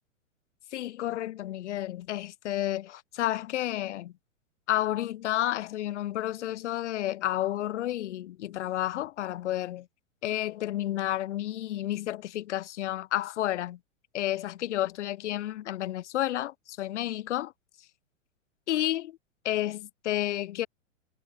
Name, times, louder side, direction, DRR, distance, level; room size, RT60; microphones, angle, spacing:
voice 1, 0.7-4.1 4.7-9.9 10.2-13.8 14.1-17.5 18.7-19.2 19.4-20.7, left 13 dB, 60° left, 1.5 m, -31 dB
hypercardioid pair, 110°, 39 cm